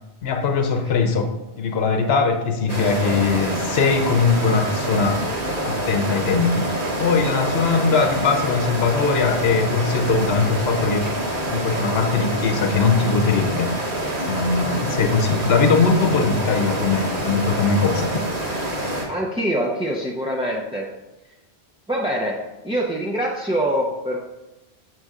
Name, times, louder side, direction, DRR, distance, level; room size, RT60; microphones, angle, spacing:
voice 1, 0.2-5.3 5.6-11.1 11.4-13.8 14.2-18.1, left 4 dB, 70° left, 6 dB, 1.0 m, -21 dB
sound 1, 2.7-19.1, right 1 dB, 40° right, 1.3 m, -26 dB
voice 2, 19.1-20.9 21.9-24.2, right 1 dB, 5° right, -3 dB, 0.5 m, -24 dB
7.7 x 4.8 x 3.6 m, 1.0 s
omnidirectional pair, 1.1 m